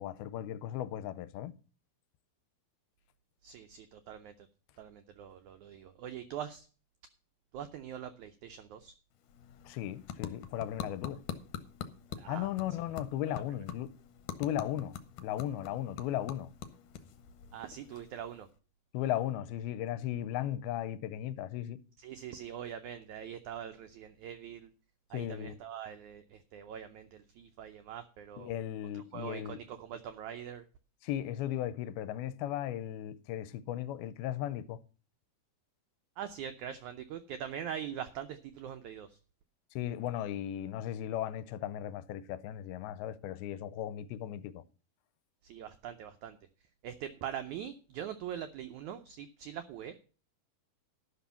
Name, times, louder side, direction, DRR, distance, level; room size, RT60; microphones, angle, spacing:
voice 1, 0.0-1.5 9.7-11.2 12.3-13.9 14.4-16.5 18.9-21.8 25.1-25.6 28.4-29.6 31.0-34.8 39.8-44.6, left 12 dB, 90° left, 2.6 m, -36 dB
voice 2, 3.4-4.3 4.8-6.7 7.5-8.9 12.2-12.5 17.5-18.5 22.0-24.7 25.1-28.5 28.9-30.6 36.2-39.1 45.4-46.4 46.8-50.0, right 9 dB, 85° right, 1.7 m, -43 dB
sound 1, 9.1-18.6, left 8 dB, 70° left, 2.3 m, -45 dB
11.5 x 6.2 x 6.9 m
omnidirectional pair, 4.3 m